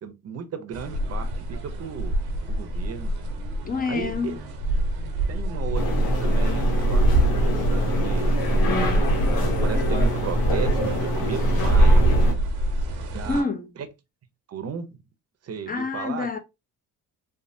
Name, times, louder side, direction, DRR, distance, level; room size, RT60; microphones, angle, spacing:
voice 1, 0.0-2.1 2.5-3.1 3.9-4.4 5.3-8.9 9.6-12.1 13.1-13.5 14.5-14.9 15.4-16.3, right 7 dB, 40° right, 0.7 m, -35 dB
sound 1, 0.7-13.4, right 1 dB, 85° right, 0.8 m, -26 dB
voice 2, 3.6-4.4 13.3-13.7 15.7-16.4, left 4 dB, 25° left, 0.6 m, -27 dB
sound 2, 5.7-12.3, equal, 70° left, 1.0 m, -22 dB
3.2 x 2.0 x 2.6 m
cardioid pair, 85°, 37 cm